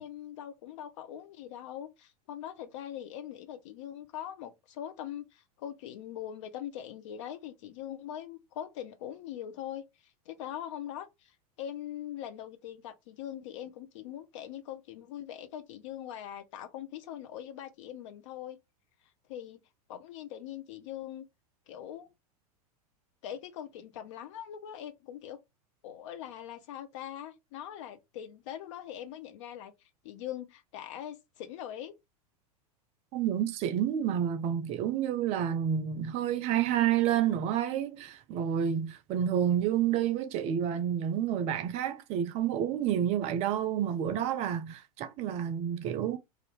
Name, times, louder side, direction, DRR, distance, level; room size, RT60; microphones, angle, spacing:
voice 1, 0.0-9.8 10.3-11.3 11.6-18.6 19.3-19.6 19.9-21.3 21.7-22.1 23.2-25.4 25.8-29.7 30.0-31.9, left 10 dB, 50° left, 0.7 m, -42 dB
voice 2, 33.1-46.2, right 9 dB, 35° right, 0.5 m, -29 dB
2.6 x 2.5 x 3.4 m
figure-of-eight pair, 90°, 20 cm